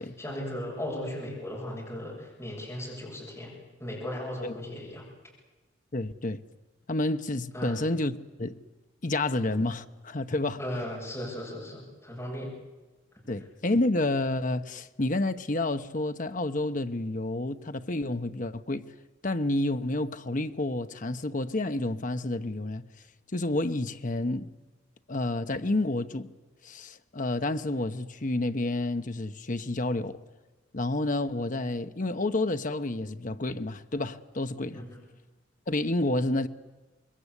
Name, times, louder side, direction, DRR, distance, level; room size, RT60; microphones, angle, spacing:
voice 1, 0.0-3.5 3.8-5.1 7.5-7.8 10.6-12.5 13.1-13.2 34.7-35.0, left 1 dB, 15° left, 7.4 m, -37 dB
voice 2, 5.9-6.4 6.9-8.1 8.4-8.5 9.0-10.6 13.3-18.8 19.2-22.8 23.3-24.5 25.1-26.3 26.6-30.2 30.7-34.8 35.7-36.5, left 2 dB, 40° left, 0.9 m, -29 dB
26.0 x 21.5 x 8.3 m
head